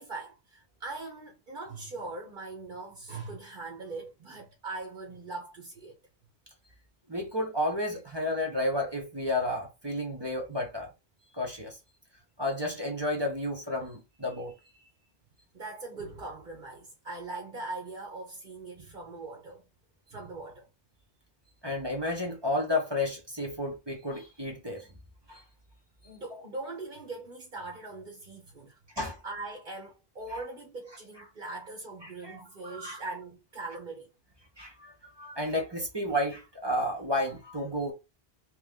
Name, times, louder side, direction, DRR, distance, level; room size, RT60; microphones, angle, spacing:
voice 1, 0.0-6.0 15.5-19.6 20.1-20.7 26.0-28.8 29.2-34.1, right 3 dB, 55° right, 1.2 m, -41 dB
voice 2, 7.1-10.9 11.3-11.8 12.4-14.5 21.6-24.9 25.3-25.4 26.3-26.4 29.0-29.2 32.0-33.0 34.6-37.9, left 1 dB, 25° right, 1.0 m, -32 dB
3.3 x 3.2 x 3.6 m
omnidirectional pair, 1.0 m